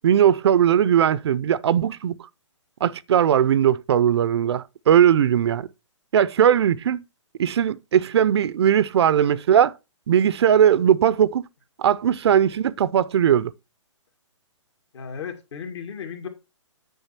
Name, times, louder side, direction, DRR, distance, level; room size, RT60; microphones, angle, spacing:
voice 1, 0.0-2.1 2.8-5.7 6.1-7.0 7.4-9.7 10.1-11.5 11.8-13.5, right 9 dB, 55° right, 0.5 m, -19 dB
voice 2, 14.9-16.3, left 7 dB, 60° left, 2.4 m, -35 dB
9.1 x 5.4 x 4.3 m
hypercardioid pair, 150°, 16 cm